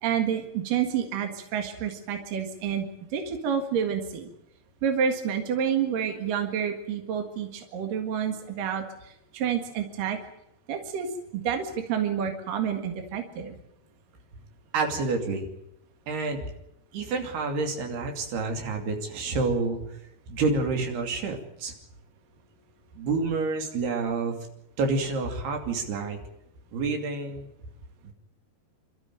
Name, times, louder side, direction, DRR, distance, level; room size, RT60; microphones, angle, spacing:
voice 1, 0.0-4.3 4.8-8.8 9.3-10.2 10.7-11.1 11.3-13.5, right 8 dB, 65° right, 5 dB, 3.3 m, -29 dB
voice 2, 14.7-15.5 16.1-16.4 16.9-19.8 20.3-21.7 23.0-24.4 24.8-26.2 26.7-27.5, right 3 dB, 85° right, 3 dB, 4.7 m, -28 dB
27.5 x 13.5 x 9.2 m, 0.84 s
omnidirectional pair, 4.5 m